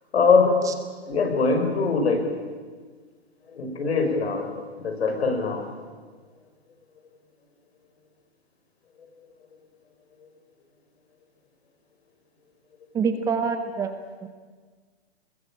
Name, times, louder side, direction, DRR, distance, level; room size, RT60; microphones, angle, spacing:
voice 1, 0.1-2.4 3.5-5.7 10.2-10.3, left 4 dB, 75° left, 4 dB, 5.9 m, -23 dB
voice 2, 12.9-13.9 14.2-14.3, right 5 dB, 10° right, 7 dB, 0.9 m, -25 dB
23.0 x 21.0 x 8.8 m, 1.5 s
hypercardioid pair, 160°, 32 cm